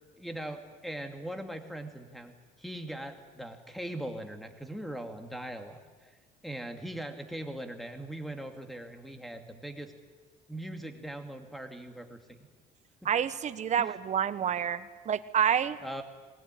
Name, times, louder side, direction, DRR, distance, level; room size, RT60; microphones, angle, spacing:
voice 1, 0.2-6.1 6.4-9.9 10.5-12.5 13.0-13.1 13.8-13.9 15.8-16.0, right 1 dB, ahead, 6 dB, 2.4 m, -40 dB
voice 2, 13.0-15.8, right 8 dB, 45° right, 13 dB, 1.1 m, -28 dB
20.5 x 19.5 x 9.9 m, 1.4 s
cardioid pair, 110°, 17 cm